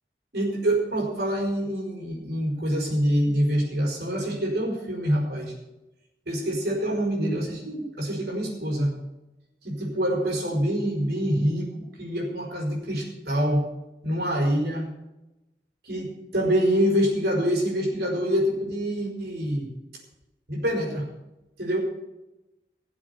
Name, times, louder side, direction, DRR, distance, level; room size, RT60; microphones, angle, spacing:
voice 1, 0.3-5.5 6.2-9.0 9.6-11.7 12.0-13.7 14.0-14.9 15.8-19.7 20.5-21.1 21.6-21.8, equal, 65° right, -1 dB, 4.7 m, -25 dB
17.5 x 7.5 x 6.8 m, 0.98 s
head